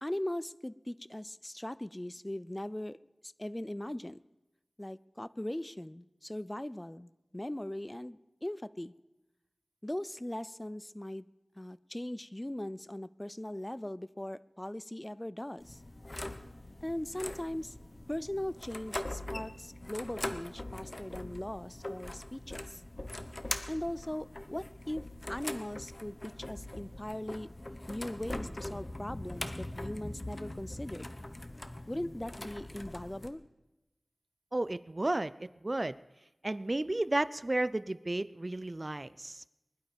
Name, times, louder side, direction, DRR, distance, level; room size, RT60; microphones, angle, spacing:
voice 1, 0.0-4.2 4.8-8.9 9.8-11.3 11.6-15.8 16.8-17.7 18.1-22.8 23.7-27.5 27.9-31.1 31.9-33.4, left 1 dB, 20° left, 18 dB, 0.4 m, -39 dB
sound 1, 15.6-33.3, left 1 dB, 35° left, 1.1 m, -42 dB
voice 2, 34.5-36.0 36.4-39.4, right 2 dB, 40° right, 18 dB, 0.4 m, -33 dB
20.5 x 11.5 x 5.2 m, 1.0 s
wide cardioid pair, 60°, 0 cm